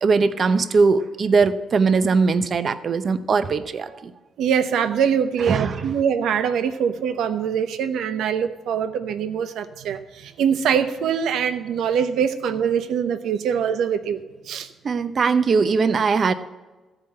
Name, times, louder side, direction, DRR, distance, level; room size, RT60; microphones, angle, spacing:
voice 1, 0.0-4.1 5.5-5.7 14.8-16.3, right 4 dB, 45° right, 11 dB, 0.7 m, -20 dB
voice 2, 4.4-14.2 14.5-14.7, right 7 dB, 80° right, 9 dB, 0.8 m, -23 dB
14.5 x 5.0 x 7.7 m, 1.2 s
cardioid pair, 90°, 0 cm